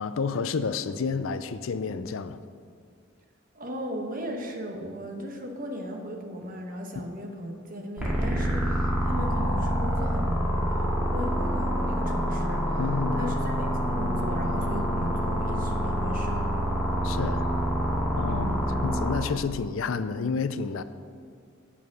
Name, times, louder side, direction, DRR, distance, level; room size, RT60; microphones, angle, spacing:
voice 1, 0.0-2.4 12.8-13.4 17.0-17.5 18.2-20.8, left 5 dB, 80° left, 0.5 m, -30 dB
voice 2, 3.5-12.8 13.1-16.5 18.3-18.8, equal, 45° right, 1.2 m, -36 dB
sound 1, 8.0-19.1, equal, 5° right, 2.1 m, -26 dB
8.5 x 7.1 x 6.1 m
head